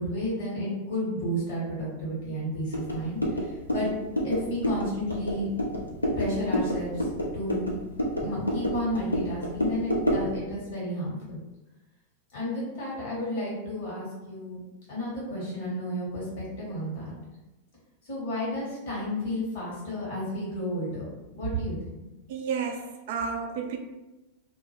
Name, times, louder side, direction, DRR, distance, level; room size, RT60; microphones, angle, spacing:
voice 1, 0.0-3.9 4.2-5.5 6.1-7.1 7.3-7.7 8.2-11.4 12.3-14.6 14.9-17.1 18.0-21.1 21.3-21.8, left 1 dB, 50° left, -5 dB, 1.0 m, -32 dB
sound 1, 2.7-10.3, equal, 85° left, 0.4 m, -29 dB
voice 2, 22.3-23.8, right 6 dB, 50° right, 4 dB, 0.3 m, -31 dB
2.1 x 2.0 x 3.2 m, 1.0 s
figure-of-eight pair, 90°, 0 cm